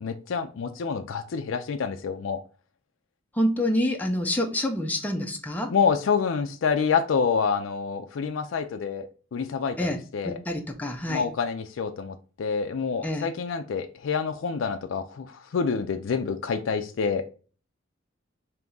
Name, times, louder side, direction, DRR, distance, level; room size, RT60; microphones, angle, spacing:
voice 1, 0.0-2.4 5.7-10.4 11.1-17.2, left 6 dB, 70° left, 0.4 m, -27 dB
voice 2, 3.3-5.7 9.8-10.0 10.2-11.2 13.0-13.3, left 1 dB, 10° left, 0.5 m, -27 dB
3.5 x 2.8 x 3.7 m
head